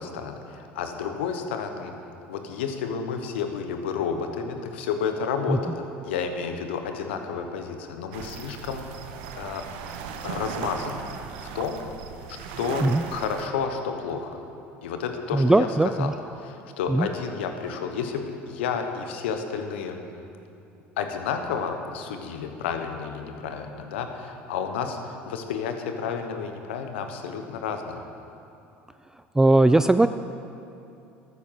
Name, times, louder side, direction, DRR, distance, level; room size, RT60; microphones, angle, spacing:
voice 1, 0.0-1.9 2.3-9.1 9.3-9.6 10.2-11.1 11.5-11.8 12.3-14.4 14.8-15.7 16.0-16.1 16.4-20.0 21.0-28.0, left 6 dB, 80° left, 6 dB, 1.1 m, -31 dB
sound 1, 8.1-13.5, right 7 dB, 75° right, 0.9 m, -37 dB
voice 2, 15.3-16.1 16.9-17.1 29.4-30.1, right 2 dB, 10° right, 11 dB, 0.3 m, -19 dB
13.0 x 9.5 x 5.8 m, 2.7 s
hypercardioid pair, 75°, 6 cm